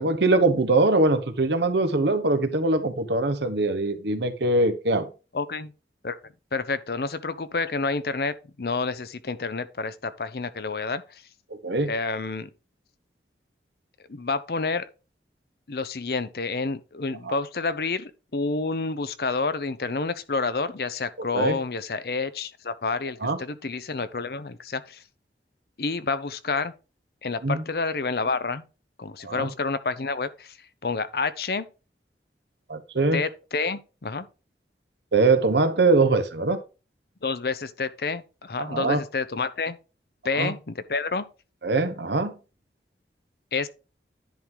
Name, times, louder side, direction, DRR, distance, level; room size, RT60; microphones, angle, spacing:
voice 1, 0.0-5.1 11.5-11.9 17.2-17.4 21.3-21.6 23.2-23.4 27.4-27.6 29.2-29.5 32.7-33.2 35.1-36.6 38.6-39.0 40.3-40.5 41.6-42.3, right 2 dB, 80° right, 1.1 m, -22 dB
voice 2, 5.3-5.7 6.0-6.2 6.5-11.2 11.8-12.5 14.1-14.8 15.7-25.0 25.8-26.7 27.2-28.6 29.0-30.6 30.8-31.7 33.1-34.3 37.2-39.8 40.2-41.3 43.5-43.7, left 4 dB, 60° left, 0.7 m, -29 dB
10.5 x 3.8 x 4.6 m
head